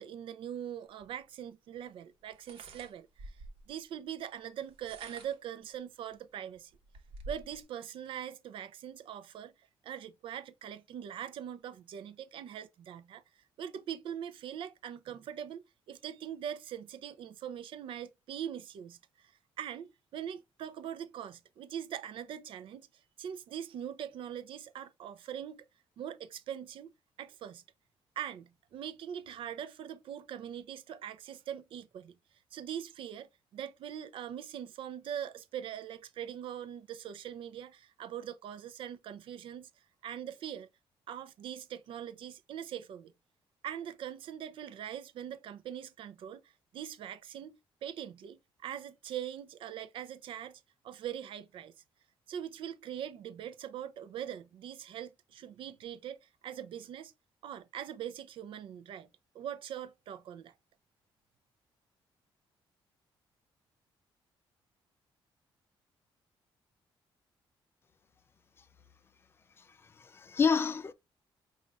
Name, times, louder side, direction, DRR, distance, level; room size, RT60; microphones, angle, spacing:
voice 1, 0.0-3.4 3.7-6.7 7.3-9.5 9.8-13.2 13.6-19.3 19.6-22.9 23.2-25.6 26.0-26.9 27.2-27.6 28.2-32.2 32.5-39.7 40.0-40.7 41.1-43.1 43.6-51.7 52.3-57.1 57.4-59.1 59.3-60.5, right 9 dB, 65° right, 0.5 m, -42 dB
sound 1, 1.0-1.1 2.3-3.7 4.6-5.5 6.1-6.2 6.5-7.6, right 2 dB, 85° right, 1.0 m, -48 dB
voice 2, 69.6-70.9, left 6 dB, 25° left, 0.4 m, -30 dB
5.2 x 2.4 x 3.2 m
cardioid pair, 165°, 9 cm